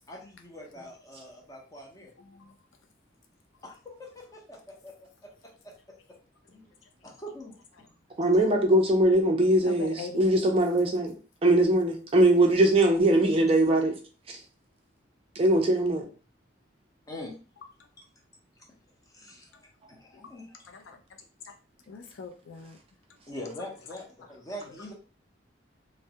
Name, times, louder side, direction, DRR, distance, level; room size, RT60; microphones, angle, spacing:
voice 1, 0.1-2.1 3.6-4.9 5.2-5.3 5.6-5.7 6.5-6.7 7.0-7.6 8.1-8.2 17.1-17.3 19.1-19.5 19.9-20.6 23.3-24.9, left 1 dB, 20° left, -2 dB, 0.6 m, -43 dB
voice 2, 2.2-2.5 9.6-10.5 20.1-20.3 20.7-21.0 21.9-22.8, left 5 dB, 85° left, 5 dB, 0.4 m, -41 dB
voice 3, 8.2-11.1 11.4-13.9 14.3-14.4 15.4-16.1, right 1 dB, 30° right, 2 dB, 0.4 m, -21 dB
2.2 x 2.0 x 2.7 m, 0.37 s
head